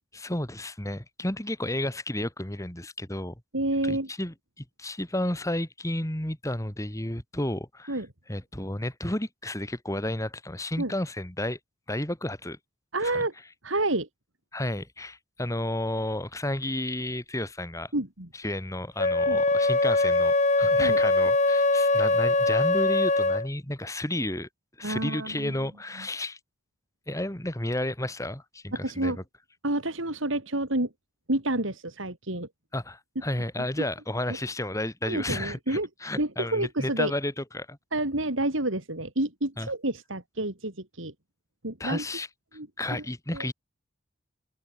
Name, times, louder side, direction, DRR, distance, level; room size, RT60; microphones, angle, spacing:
voice 1, 0.1-3.3 3.8-8.0 8.3-11.6 11.9-12.6 13.0-13.2 14.5-17.9 18.4-24.5 24.8-26.4 27.1-29.2 32.7-37.8 39.6-39.7 41.8-42.3 42.8-43.5, left 1 dB, 15° left, 2.4 m, -32 dB
voice 2, 3.5-4.1 7.9-8.1 10.8-10.9 12.9-13.3 13.6-14.1 17.9-18.3 19.3-19.4 20.8-21.0 24.8-25.5 28.7-29.2 29.6-30.9 31.3-32.5 35.0-35.9 36.2-37.1 37.9-41.1 41.6-42.0 42.5-43.0 43.3-43.5, right 1 dB, 75° right, 4.1 m, -29 dB
Wind instrument woodwind instrument, 19.0-23.5, left 2 dB, 35° left, 2.8 m, -22 dB
head